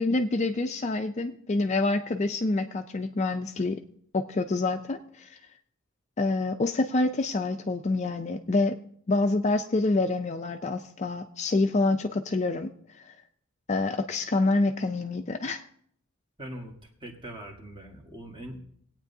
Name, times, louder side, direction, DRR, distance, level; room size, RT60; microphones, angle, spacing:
voice 1, 0.0-3.8 4.1-5.3 6.2-8.8 9.1-12.7 13.0-13.1 13.7-15.6, left 2 dB, 30° left, 7 dB, 0.4 m, -27 dB
voice 2, 16.4-18.6, right 1 dB, 20° right, 2 dB, 1.4 m, -42 dB
20.5 x 8.8 x 2.7 m, 0.67 s
head